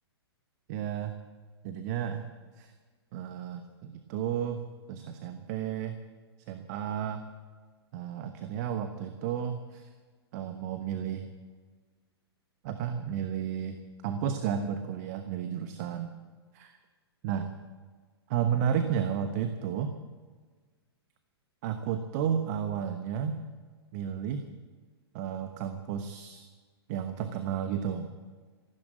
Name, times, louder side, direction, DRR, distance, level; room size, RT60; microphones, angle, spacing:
voice 1, 0.7-1.1 1.6-2.3 2.6-2.7 3.1-4.6 4.9-5.9 6.5-7.2 7.9-9.9 10.3-11.3 12.6-13.8 14.0-16.1 16.5-16.8 17.2-17.5 18.3-19.9 21.6-23.4 23.9-24.4 25.1-26.4 26.9-28.1, right 8 dB, 40° right, 8 dB, 1.1 m, -32 dB
15.0 x 12.0 x 7.5 m, 1.5 s
figure-of-eight pair, 110°, 14 cm